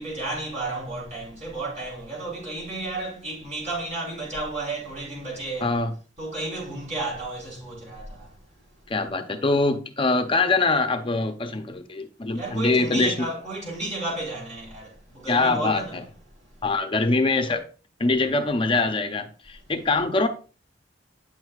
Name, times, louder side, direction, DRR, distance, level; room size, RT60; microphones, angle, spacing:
voice 1, 0.0-5.8 6.2-8.4 12.3-16.0 19.7-19.9, right 2 dB, 40° right, 4.0 m, -32 dB
voice 2, 5.6-5.9 8.9-13.3 15.3-16.0 16.6-17.6 18.0-20.3, left 3 dB, 30° left, 0.6 m, -23 dB
8.8 x 6.2 x 2.4 m
head